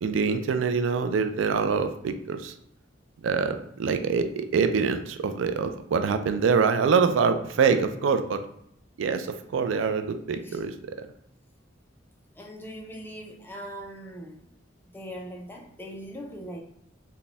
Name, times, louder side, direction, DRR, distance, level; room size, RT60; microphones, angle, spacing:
voice 1, 0.0-2.5 3.2-8.4 9.0-11.0, right 5 dB, 70° right, 9 dB, 0.4 m, -25 dB
voice 2, 12.4-14.5 14.9-16.6, equal, 10° left, 0 dB, 0.5 m, -40 dB
4.1 x 2.2 x 3.4 m, 0.73 s
head